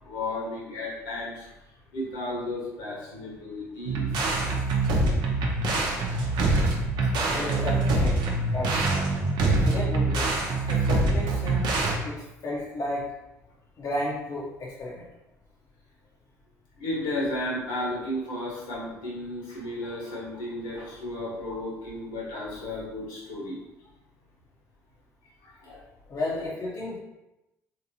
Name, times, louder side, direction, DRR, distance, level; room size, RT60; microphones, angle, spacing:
voice 1, 0.0-1.5 1.9-4.1 7.0-7.4 9.4-9.5 16.8-23.6 25.6-25.8 26.2-26.5, left 1 dB, 70° left, -4 dB, 1.4 m, -34 dB
sound 1, 3.9-12.0, right 2 dB, 60° right, 0.7 m, -25 dB
voice 2, 7.3-8.8 9.6-10.3 10.7-11.7 12.0-12.2 12.4-13.0 13.8-15.1 26.1-27.0, left 2 dB, 45° left, -6 dB, 0.8 m, -32 dB
3.6 x 2.9 x 2.8 m, 0.94 s
hypercardioid pair, 60°, 8 cm